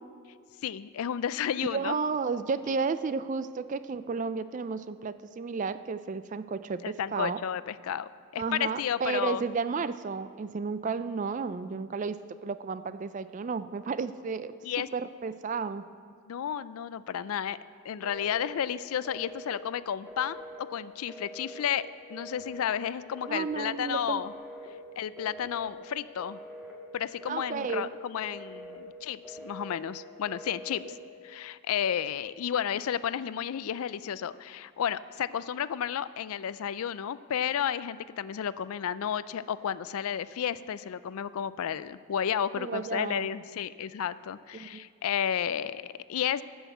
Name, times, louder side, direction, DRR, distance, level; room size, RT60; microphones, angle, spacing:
voice 1, 0.6-2.0 6.8-9.4 14.6-14.9 16.3-17.6 17.8-24.3 25.0-26.4 26.9-30.8 31.2-46.4, left 9 dB, 75° left, 16 dB, 0.4 m, -32 dB
voice 2, 1.7-7.4 8.4-14.6 14.9-15.8 23.3-24.2 27.3-27.9 42.6-43.3 44.5-44.8, right 5 dB, 35° right, 13 dB, 0.3 m, -32 dB
Telephone, 18.0-18.6 19.0-19.6 20.1-20.6 21.1-21.7 22.1-22.7 23.1-23.7 24.1-24.7 25.2-25.7 26.2-26.8 27.2-27.8 28.2-28.8 29.2-29.8 30.2-30.8, equal, 10° right, 1.7 m, -44 dB
13.0 x 6.4 x 7.8 m, 2.1 s
head